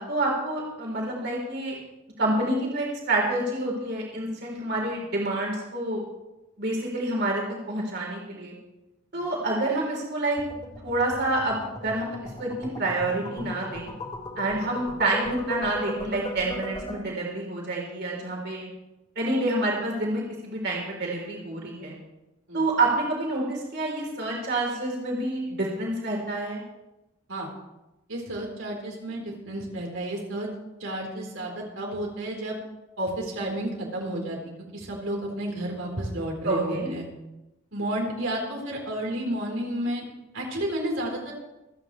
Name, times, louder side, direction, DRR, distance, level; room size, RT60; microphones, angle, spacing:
voice 1, 0.0-1.8 2.2-6.0 6.6-8.5 9.1-10.4 10.8-13.9 14.4-18.7 19.2-21.9 22.5-26.6 36.4-36.9, right 2 dB, 55° right, -2 dB, 3.9 m, -28 dB
sound 1, 10.4-16.9, left 1 dB, 30° left, 3.6 m, -37 dB
voice 2, 28.1-30.5 30.8-32.6 33.0-34.4 34.7-37.0 37.7-40.0 40.3-41.3, right 1 dB, 70° right, -1 dB, 4.2 m, -31 dB
27.0 x 9.8 x 3.3 m, 0.97 s
head